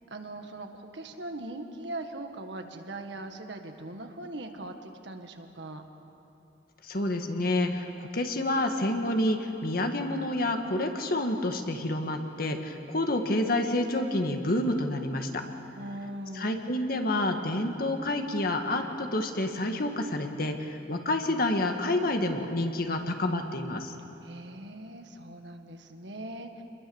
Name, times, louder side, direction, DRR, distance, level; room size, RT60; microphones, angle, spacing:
voice 1, 0.1-5.9 15.8-16.6 24.2-26.6, right 1 dB, 75° right, 5 dB, 1.8 m, -40 dB
voice 2, 6.8-15.4 16.3-23.9, left 1 dB, 55° left, 5 dB, 1.8 m, -28 dB
28.0 x 21.5 x 7.2 m, 2.8 s
head